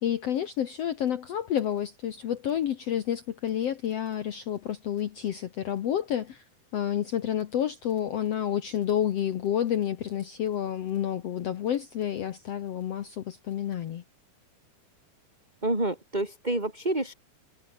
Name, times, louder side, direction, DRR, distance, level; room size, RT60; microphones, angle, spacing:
voice 1, 0.0-6.4 6.7-14.0, left 10 dB, 65° left, 1.6 m, -29 dB
voice 2, 15.6-17.1, right 2 dB, 10° right, 5.1 m, -28 dB
omnidirectional pair, 4.3 m